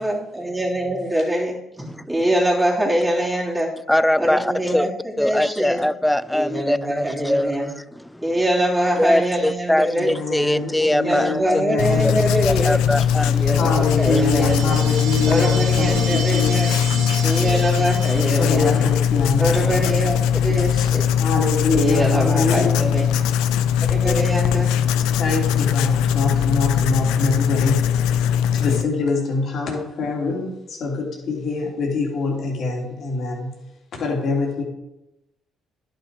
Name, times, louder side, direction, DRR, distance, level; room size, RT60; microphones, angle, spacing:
voice 1, 0.0-1.6 2.1-3.7 4.2-5.8 6.3-7.7 8.2-10.1 11.0-12.8 13.4-14.8 15.3-16.7 17.2-18.8 19.4-21.1 21.7-23.2 23.8-24.7, right 1 dB, 10° right, 3.2 m, -23 dB
voice 2, 3.9-4.9 5.2-7.6 8.1-8.3 9.0-11.4 12.0-12.1 12.4-13.5 14.1-14.3, left 1 dB, 5° left, 0.4 m, -21 dB
voice 3, 9.8-12.2 13.6-17.1 18.3-19.9 21.2-22.9 25.2-27.9 28.5-33.6 33.9-34.6, left 3 dB, 60° left, 3.2 m, -25 dB
Writing, 11.8-28.8, left 9 dB, 85° left, 0.5 m, -20 dB
sound 1, 13.5-18.9, right 6 dB, 80° right, 1.1 m, -32 dB
11.0 x 6.8 x 4.9 m
supercardioid pair, 65°, 0 cm